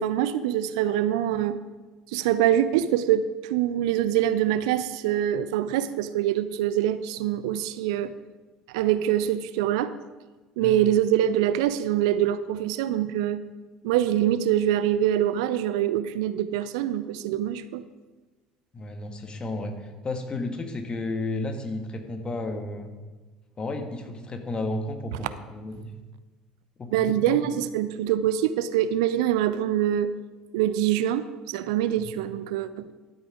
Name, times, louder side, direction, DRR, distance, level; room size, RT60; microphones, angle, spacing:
voice 1, 0.0-1.6 2.1-8.1 8.7-9.9 10.6-13.4 13.8-17.8 26.9-30.1 30.5-32.9, right 11 dB, 60° right, 14 dB, 0.5 m, -24 dB
voice 2, 18.7-22.9 23.6-25.9 26.8-27.4 32.0-32.1, left 2 dB, 25° left, 5 dB, 1.6 m, -33 dB
12.0 x 8.4 x 5.1 m, 1.3 s
figure-of-eight pair, 60°, 4 cm